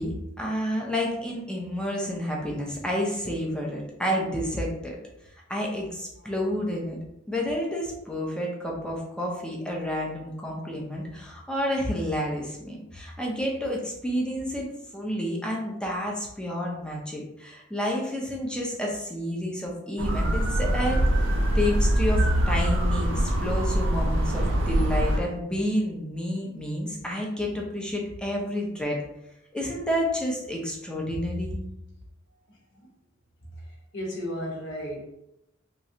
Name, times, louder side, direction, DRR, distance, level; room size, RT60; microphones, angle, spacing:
voice 1, 0.0-5.0 5.5-7.0 7.3-21.0 21.5-29.0 29.5-31.6, equal, 5° left, -2 dB, 0.5 m, -30 dB
sound 1, 20.0-25.2, right 1 dB, 70° right, 0.5 m, -23 dB
voice 2, 33.9-35.0, equal, 65° left, -3 dB, 1.0 m, -33 dB
3.0 x 2.4 x 2.7 m, 0.84 s
head